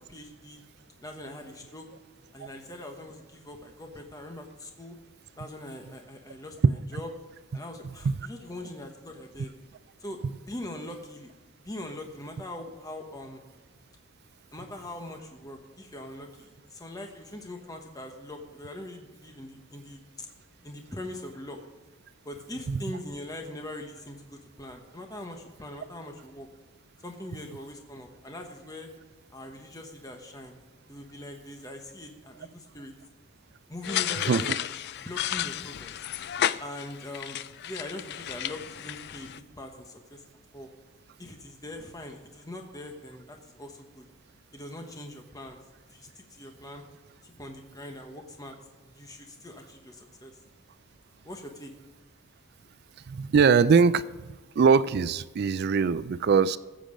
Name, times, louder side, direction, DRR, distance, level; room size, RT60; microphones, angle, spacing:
voice 1, 0.1-0.6 1.0-1.9 2.3-5.0 5.4-7.1 7.5-9.5 10.0-11.3 11.6-13.4 14.5-20.3 20.6-21.6 22.2-26.5 27.0-28.9 29.3-30.6 30.9-32.9 33.7-34.5 35.0-35.9 36.6-37.4 37.6-40.2 40.5-40.7 41.2-44.0 44.5-45.6 45.9-46.8 47.2-48.6 48.8-50.3 51.2-51.7, left 1 dB, 15° left, 3 dB, 1.1 m, -42 dB
sound 1, 33.8-39.4, left 11 dB, 50° left, 0.3 m, -32 dB
voice 2, 53.1-54.0 54.6-56.6, right 5 dB, 50° right, 16 dB, 0.3 m, -21 dB
15.0 x 7.6 x 5.0 m, 1.3 s
head